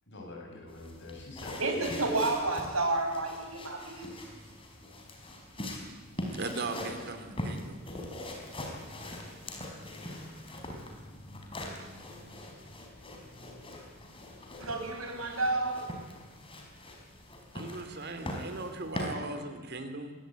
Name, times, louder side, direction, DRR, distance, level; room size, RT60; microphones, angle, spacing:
voice 1, 0.1-2.3, left 2 dB, 55° left, 1 dB, 7.9 m, -46 dB
sound 1, 0.7-19.1, left 1 dB, 25° left, 4.7 m, -42 dB
voice 2, 1.6-4.1 14.6-15.9, right 2 dB, 80° right, 4 dB, 6.1 m, -30 dB
voice 3, 6.3-7.8 17.5-20.1, right 3 dB, 50° right, 8 dB, 3.0 m, -38 dB
25.0 x 20.0 x 9.4 m, 1.3 s
head